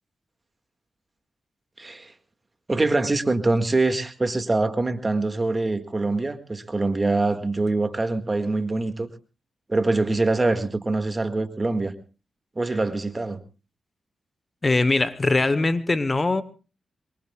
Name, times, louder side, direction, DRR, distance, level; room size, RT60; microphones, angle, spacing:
voice 1, 1.8-2.1 2.7-9.1 9.7-11.9 12.6-13.4, right 2 dB, 30° right, 1.9 m, -24 dB
voice 2, 14.6-16.4, left 2 dB, 30° left, 1.0 m, -21 dB
24.0 x 22.0 x 2.3 m
cardioid pair, 65°, 0 cm